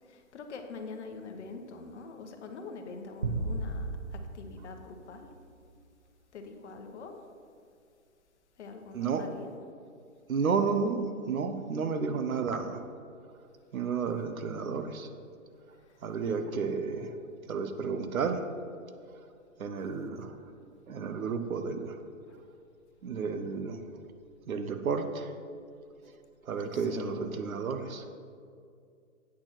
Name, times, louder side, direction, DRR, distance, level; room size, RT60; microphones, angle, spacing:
voice 1, 0.1-5.3 6.3-7.2 8.6-9.5 20.1-20.2 26.7-27.3, left 4 dB, 55° left, 5 dB, 1.0 m, -44 dB
sound 1, 3.2-5.7, right 2 dB, 35° right, 0.4 m, -36 dB
voice 2, 8.9-9.3 10.3-12.8 13.7-15.1 16.0-17.1 17.5-18.5 19.6-20.3 20.9-22.0 23.0-23.9 24.5-25.3 26.4-28.1, right 5 dB, 80° right, 8 dB, 0.9 m, -32 dB
8.6 x 4.3 x 6.0 m, 2.3 s
hypercardioid pair, 150°, 41 cm